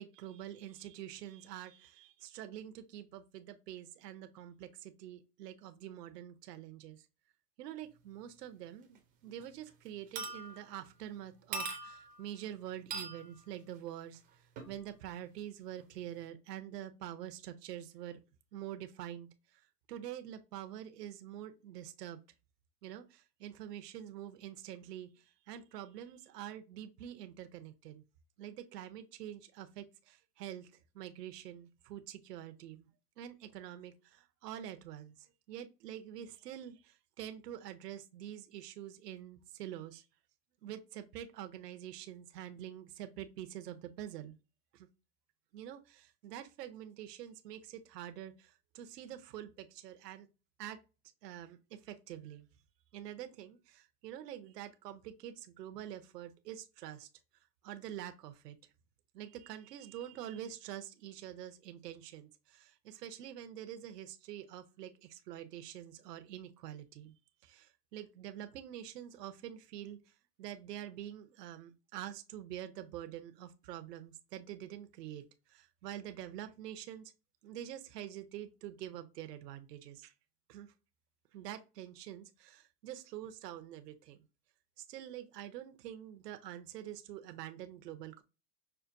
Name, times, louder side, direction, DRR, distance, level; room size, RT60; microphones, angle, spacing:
voice 1, 0.0-7.1 7.6-14.2 14.7-18.2 18.5-19.3 19.9-22.2 22.8-28.0 28.4-32.9 33.2-40.0 40.6-44.4 44.7-44.9 45.5-50.3 50.6-50.8 51.2-52.5 52.9-57.1 57.6-58.6 59.1-67.1 67.4-70.0 70.4-75.2 75.5-77.1 77.4-80.1 80.5-80.7 81.3-84.2 84.8-88.2, right 11 dB, 80° right, 0.7 m, -46 dB
sound 1, 8.9-9.0 9.4-9.7 10.1-10.8 11.5-12.2 12.9-13.3 14.6-14.8 15.8-15.9, right 4 dB, 20° right, 0.4 m, -41 dB
5.6 x 2.2 x 2.5 m
hypercardioid pair, 125°, 48 cm